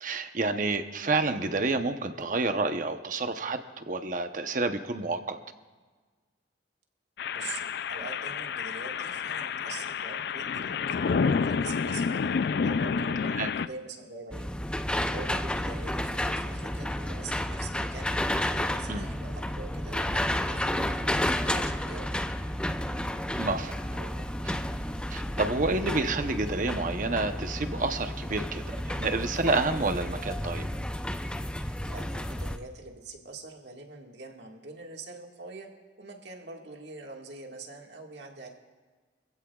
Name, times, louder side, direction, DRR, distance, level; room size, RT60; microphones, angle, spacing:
voice 1, 0.0-5.4 13.4-13.5 18.9-19.1 23.4-24.2 24.4-24.5 25.1-30.7, right 3 dB, 50° right, 8 dB, 0.8 m, -29 dB
sound 1, 7.2-13.7, left 5 dB, 65° left, 0.4 m, -29 dB
voice 2, 7.9-12.3 12.6-14.5 15.1-22.1 31.9-35.7 36.0-38.5, right 3 dB, 85° right, 1 dB, 1.8 m, -44 dB
sound 2, 14.3-32.6, left 1 dB, 5° left, 0.5 m, -31 dB
25.5 x 15.5 x 2.4 m, 1.4 s
head